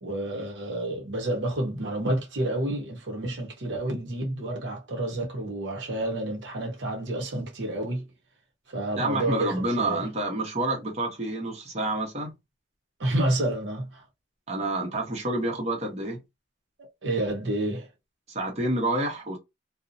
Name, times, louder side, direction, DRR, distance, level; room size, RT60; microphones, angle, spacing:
voice 1, 0.0-8.1 8.7-10.1 13.0-14.0 17.0-17.9, right 1 dB, 70° right, 0.7 m, -29 dB
voice 2, 9.0-12.3 14.5-16.2 18.3-19.4, right 2 dB, 35° right, 0.8 m, -28 dB
2.5 x 2.0 x 2.5 m
head